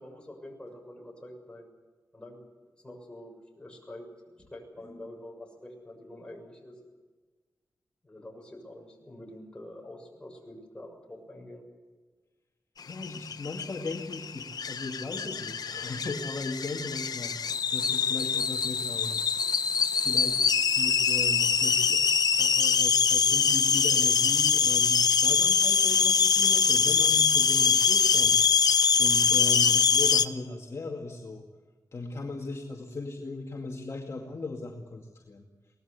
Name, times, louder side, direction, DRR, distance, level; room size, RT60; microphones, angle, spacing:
voice 1, 0.0-1.7 2.1-2.4 2.8-4.1 4.5-6.8 8.0-11.7, left 1 dB, 15° left, 1 dB, 6.8 m, -46 dB
sound 1, 12.9-30.3, left 6 dB, 65° left, 0.8 m, -24 dB
voice 2, 12.9-19.2 20.0-20.4 20.8-22.1 22.4-28.4 29.0-31.4 31.9-35.4, left 3 dB, 45° left, 0 dB, 2.3 m, -37 dB
23.5 x 19.0 x 8.3 m, 1.3 s
wide cardioid pair, 120°, 7 cm